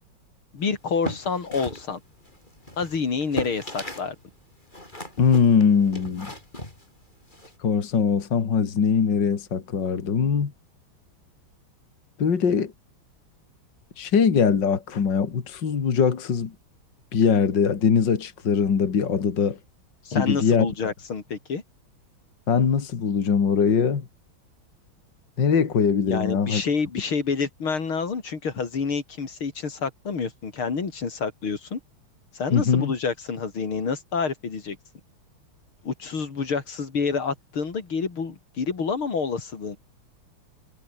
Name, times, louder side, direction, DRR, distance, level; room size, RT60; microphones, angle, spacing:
voice 1, 0.5-2.0 2.8-4.2 20.1-21.6 26.1-31.8 32.3-34.8 35.8-39.8, left 5 dB, 90° left, 4.1 m, -28 dB
sound 1, 0.8-4.1 4.4-7.5, left 1 dB, 20° left, 6.4 m, -37 dB
voice 2, 5.2-6.3 7.6-10.5 12.2-12.7 14.0-16.5 17.1-19.6 20.1-20.7 22.5-24.1 25.4-26.6 32.5-32.9, left 6 dB, 60° left, 2.8 m, -21 dB
omnidirectional pair, 2.2 m